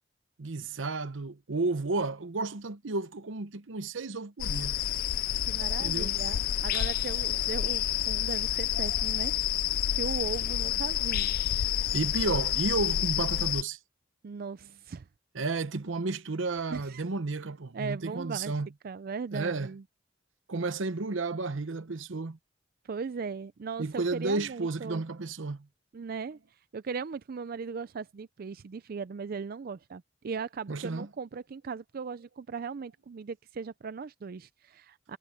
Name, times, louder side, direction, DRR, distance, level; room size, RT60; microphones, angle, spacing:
voice 1, 0.4-4.8 5.8-6.1 11.9-13.8 15.3-18.7 19.3-19.7 20.5-22.4 23.8-25.7 30.7-31.1, right 3 dB, 80° right, 0.9 m, -32 dB
sound 1, 4.4-13.6, left 11 dB, 50° left, 0.3 m, -29 dB
voice 2, 5.4-9.3 9.9-11.3 14.2-15.1 16.7-17.0 17.7-18.5 18.8-19.8 22.8-25.0 25.9-35.2, right 5 dB, 50° right, 0.4 m, -38 dB
head